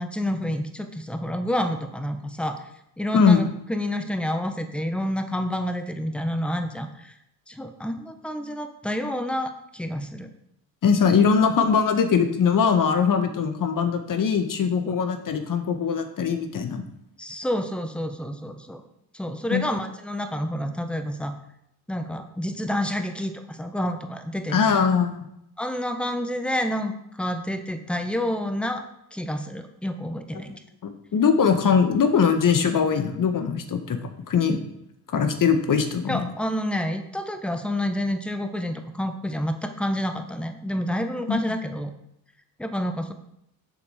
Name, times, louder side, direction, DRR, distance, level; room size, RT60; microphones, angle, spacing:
voice 1, 0.0-2.6 3.0-7.1 7.5-10.3 14.9-15.0 17.2-18.8 19.1-21.3 21.9-24.8 25.6-28.8 29.1-30.5 36.1-41.9 42.6-43.1, equal, ahead, 8 dB, 1.1 m, -29 dB
voice 2, 10.8-16.8 19.5-19.7 24.5-25.3 30.8-34.0 34.3-34.6 35.1-36.3 41.3-41.4, left 6 dB, 40° left, 7 dB, 1.6 m, -21 dB
7.1 x 7.0 x 5.1 m, 0.79 s
hypercardioid pair, 50°, 49 cm